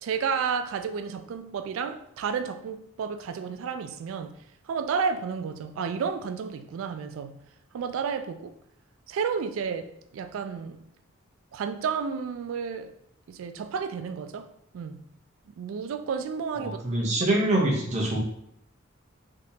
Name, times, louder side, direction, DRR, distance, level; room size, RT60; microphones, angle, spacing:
voice 1, 0.0-4.4 4.7-7.4 7.7-8.5 9.1-10.8 11.5-12.9 13.3-14.5 14.7-15.0 15.5-17.0 17.3-17.4, right 6 dB, 80° right, 0.3 m, -31 dB
voice 2, 16.6-18.2, right 1 dB, 35° right, 0.7 m, -25 dB
3.5 x 2.8 x 2.7 m
head